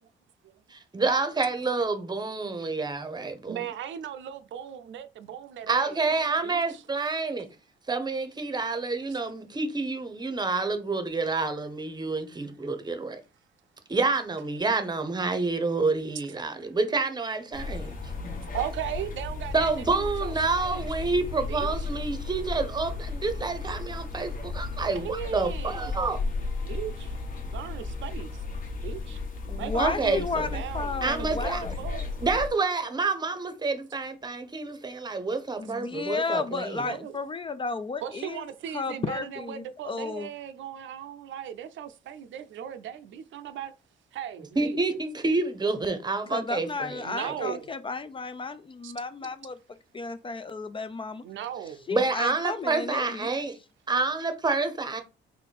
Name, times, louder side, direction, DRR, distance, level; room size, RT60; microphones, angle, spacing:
voice 1, 0.9-3.6 5.7-7.5 7.9-13.2 13.9-18.0 19.5-26.2 29.8-30.5 31.0-31.6 32.2-36.8 44.6-47.6 51.9-53.6 53.9-55.0, right 3 dB, 20° right, 0.8 m, -28 dB
voice 2, 3.5-6.0 6.4-6.6 18.4-20.9 21.4-21.9 25.0-26.0 26.6-27.1 27.5-28.4 28.8-29.2 29.6-32.0 36.8-37.2 38.0-43.7 44.1-44.8 47.0-47.7 48.8-48.9 51.2-51.8, right 10 dB, 75° right, 0.5 m, -37 dB
sound 1, 17.5-32.5, left 3 dB, 45° left, 1.2 m, -34 dB
voice 3, 29.5-31.7 35.6-38.4 38.7-40.3 46.3-49.6 49.9-51.2 51.9-53.3, left 4 dB, 25° left, 0.4 m, -33 dB
3.8 x 2.7 x 4.1 m
cardioid pair, 90°, 20 cm